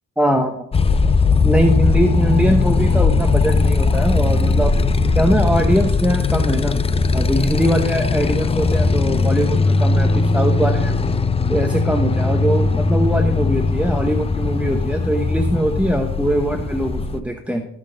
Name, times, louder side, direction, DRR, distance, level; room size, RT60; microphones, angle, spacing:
voice 1, 0.2-0.5 1.4-4.7 5.1-6.8 7.1-11.2 11.5-17.7, right 1 dB, 5° right, 5 dB, 0.9 m, -21 dB
Motorcycle, 0.7-17.2, left 3 dB, 20° left, 0.5 m, -18 dB
13.5 x 5.9 x 3.9 m, 0.74 s
cardioid pair, 90°, 30 cm